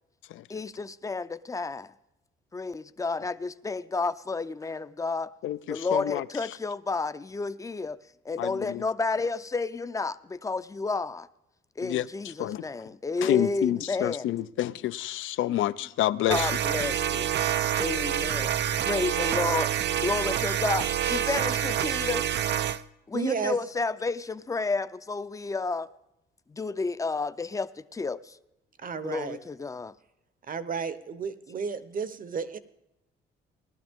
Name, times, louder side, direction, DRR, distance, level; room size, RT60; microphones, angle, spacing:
voice 1, 0.5-1.9 2.5-5.3 5.7-8.0 8.2-11.3 11.8-14.3 16.3-17.3 17.8-18.5 18.8-19.7 20.0-22.3 23.1-25.9 26.5-28.4 29.0-29.9, left 3 dB, 15° left, 0.5 m, -31 dB
voice 2, 5.4-6.2 8.4-8.8 11.8-12.1 12.4-12.6 13.2-16.5, left 13 dB, 80° left, 0.5 m, -28 dB
sound 1, 16.3-22.8, right 10 dB, 60° right, 0.5 m, -27 dB
voice 3, 23.1-23.6 28.8-29.4 30.5-32.6, right 6 dB, 45° right, 0.9 m, -32 dB
17.5 x 12.0 x 3.6 m
cardioid pair, 90°, 20 cm